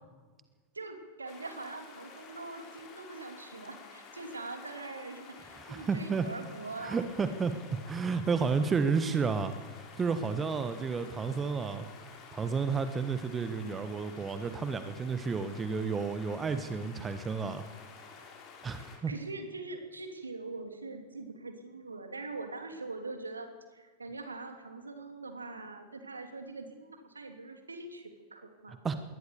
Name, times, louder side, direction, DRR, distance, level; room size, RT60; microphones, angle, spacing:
voice 1, 0.7-7.0 10.7-11.2 18.6-28.8, right 3 dB, 75° right, 6 dB, 2.9 m, -43 dB
sound 1, 1.3-19.0, left 5 dB, 35° left, 4.6 m, -51 dB
voice 2, 5.7-6.3 6.8-7.5 7.9-9.5 10.0-11.9 12.3-17.6 18.6-19.1 28.7-29.0, right 5 dB, 20° right, 10 dB, 1.4 m, -31 dB
22.0 x 18.5 x 6.9 m, 1.4 s
figure-of-eight pair, 90°, 0 cm